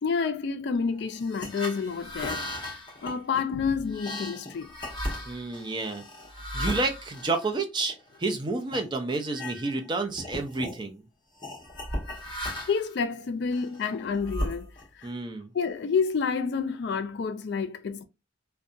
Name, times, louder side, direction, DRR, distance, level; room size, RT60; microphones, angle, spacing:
voice 1, 0.0-2.4 3.0-4.7 12.7-14.7 15.0-15.1 15.5-18.0, left 5 dB, 55° left, 0.3 m, -29 dB
sound 1, 1.1-8.2 8.7-8.9 9.2-9.9 10.1-10.8 11.4-12.9 13.5-15.0, left 1 dB, 25° left, 0.9 m, -36 dB
voice 2, 5.3-6.0 6.5-11.0 15.0-15.5, right 3 dB, 25° right, 0.4 m, -30 dB
2.6 x 2.2 x 2.3 m
head